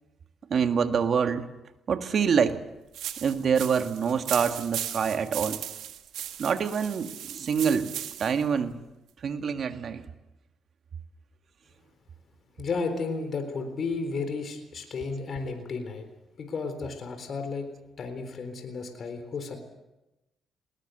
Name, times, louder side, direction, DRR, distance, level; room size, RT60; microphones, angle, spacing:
voice 1, 0.5-1.5 1.9-2.6 3.2-5.6 6.4-7.9 8.2-8.8 9.2-10.1, right 6 dB, 55° right, 8 dB, 1.8 m, -26 dB
sound 1, 2.9-8.4, right 11 dB, 80° right, 1.9 m, -37 dB
voice 2, 12.6-16.0 16.4-17.7 18.0-19.6, left 4 dB, 50° left, 6 dB, 3.9 m, -33 dB
20.0 x 19.5 x 7.9 m, 0.98 s
cardioid pair, 90°, 0 cm